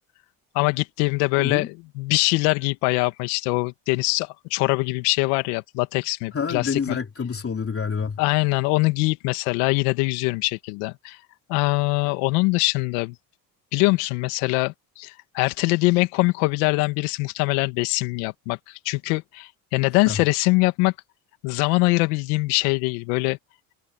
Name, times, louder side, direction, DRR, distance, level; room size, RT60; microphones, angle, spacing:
voice 1, 0.5-7.0 8.2-11.2 11.5-13.2 13.7-20.9 21.4-23.4, left 24 dB, 80° left, 2.4 m, -23 dB
voice 2, 1.4-1.7 6.3-8.2 20.1-20.2, left 6 dB, 30° left, 3.3 m, -27 dB
hypercardioid pair, 75°, 44 cm